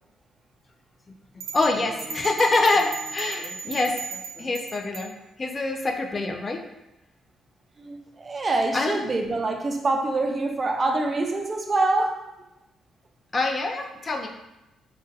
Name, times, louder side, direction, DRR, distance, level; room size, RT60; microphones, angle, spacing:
sound 1, 1.4-5.1, right 5 dB, 80° right, 0.6 m, -36 dB
voice 1, 1.5-6.6 8.7-9.0 13.3-14.3, left 3 dB, 35° left, 4 dB, 0.4 m, -25 dB
voice 2, 7.8-12.3, right 2 dB, 35° right, 4 dB, 0.4 m, -25 dB
2.6 x 2.1 x 3.8 m, 0.96 s
cardioid pair, 90°, 0 cm